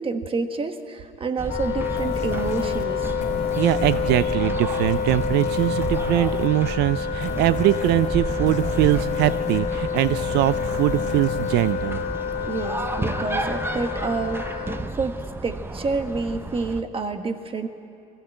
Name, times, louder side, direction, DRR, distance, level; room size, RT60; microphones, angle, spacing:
voice 1, 0.0-3.1 12.4-17.7, right 4 dB, 30° right, 7 dB, 1.4 m, -29 dB
sound 1, 1.4-16.8, right 2 dB, 15° right, 0.8 m, -32 dB
Wind instrument woodwind instrument, 1.5-14.8, left 8 dB, 70° left, 1.4 m, -28 dB
sound 2, 2.0-12.7, left 5 dB, 45° left, 2.7 m, -36 dB
voice 2, 3.5-12.0, right 15 dB, 80° right, 15 dB, 0.4 m, -22 dB
21.0 x 15.5 x 7.8 m, 2.8 s
cardioid pair, 110°, 17 cm